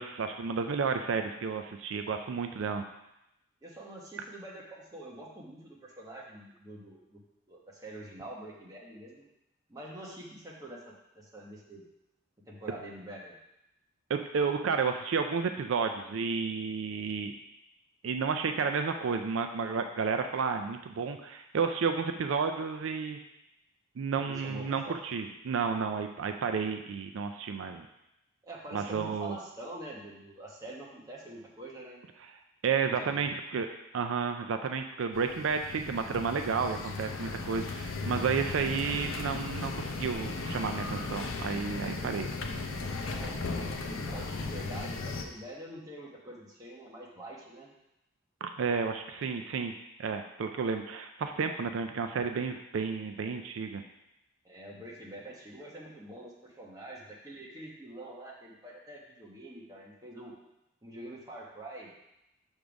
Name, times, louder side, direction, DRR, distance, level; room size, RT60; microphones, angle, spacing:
voice 1, 0.0-2.8 14.1-17.3 18.0-23.2 24.0-27.9 28.7-29.4 32.6-33.7 33.9-42.3 48.4-49.7 50.0-53.8, right 5 dB, 75° right, 6 dB, 0.4 m, -31 dB
voice 2, 3.6-7.2 7.5-9.2 9.7-11.8 12.5-13.3 24.2-25.0 28.4-32.0 32.8-33.2 41.8-42.1 42.8-47.7 54.4-60.3 60.8-61.9, right 1 dB, 15° right, -4 dB, 1.1 m, -46 dB
sound 1, 35.1-45.2, left 3 dB, 75° left, 0.6 m, -36 dB
6.5 x 3.5 x 5.1 m, 0.88 s
head